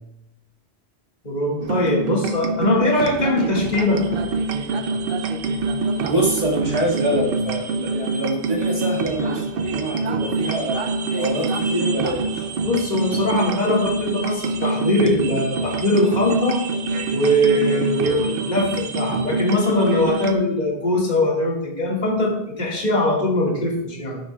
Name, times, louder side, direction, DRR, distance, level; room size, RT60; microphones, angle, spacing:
voice 1, 1.2-4.0 12.6-16.6 17.1-24.2, left 1 dB, 45° left, -3 dB, 1.8 m, -21 dB
sound 1, 1.6-20.3, right 3 dB, 65° right, 0.8 m, -25 dB
voice 2, 6.0-12.5, right 1 dB, 35° right, -3 dB, 1.9 m, -25 dB
11.0 x 6.4 x 2.2 m, 0.82 s
omnidirectional pair, 1.1 m